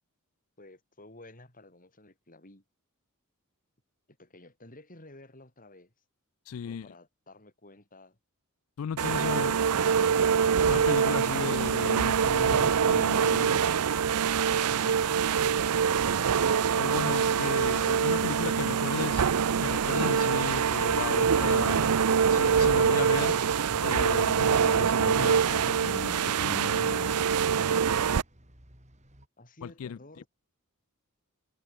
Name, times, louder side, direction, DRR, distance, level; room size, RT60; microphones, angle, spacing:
voice 1, 0.6-2.6 4.2-5.9 6.6-8.2 29.4-30.3, left 1 dB, 40° left, 7.8 m, -53 dB
voice 2, 6.5-6.9 8.8-9.5 10.6-13.6 14.8-15.0 16.8-19.2 19.6-21.9 22.3-23.4 23.8-27.2 29.6-30.0, left 7 dB, 65° left, 0.4 m, -36 dB
sound 1, 9.0-28.2, right 7 dB, 90° right, 0.6 m, -25 dB
sound 2, 12.9-29.3, equal, 30° right, 5.9 m, -51 dB
head